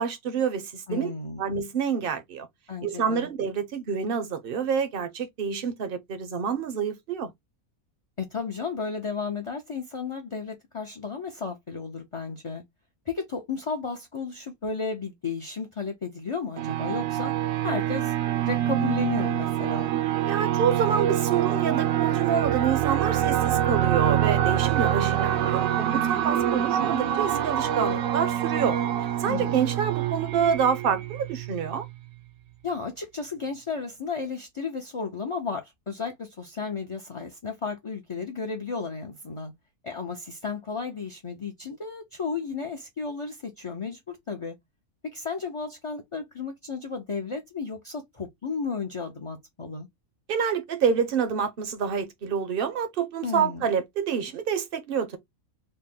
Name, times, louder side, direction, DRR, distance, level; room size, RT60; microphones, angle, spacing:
voice 1, 0.0-1.1 1.4-2.5 2.8-7.3 20.2-28.8 29.2-31.8 50.3-55.2, right 7 dB, 50° right, 0.7 m, -27 dB
voice 2, 0.9-1.4 2.7-3.3 8.2-12.6 13.1-17.3 17.6-18.1 18.4-19.9 29.3-29.7 32.6-39.5 39.8-44.5 45.0-49.9 53.2-53.7, left 5 dB, 35° left, 0.5 m, -33 dB
sound 1, 16.6-31.9, right 11 dB, 70° right, 1.0 m, -25 dB
3.9 x 2.1 x 3.6 m
omnidirectional pair, 1.5 m